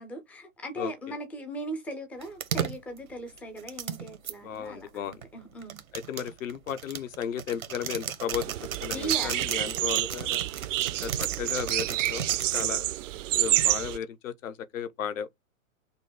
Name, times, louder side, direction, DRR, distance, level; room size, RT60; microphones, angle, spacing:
voice 1, 0.0-5.8 8.9-9.3 12.5-12.9, right 1 dB, 5° left, 0.3 m, -39 dB
sound 1, 2.2-4.3 5.1-12.7 13.4-13.9, right 8 dB, 90° right, 1.1 m, -35 dB
voice 2, 4.4-5.2 5.9-8.5 8.8-10.4 11.0-12.3 12.5-12.8 13.3-15.3, left 8 dB, 70° left, 0.9 m, -34 dB
sound 2, 8.3-14.0, right 15 dB, 65° right, 0.5 m, -28 dB
5.3 x 2.1 x 4.6 m
hypercardioid pair, 125°, 41 cm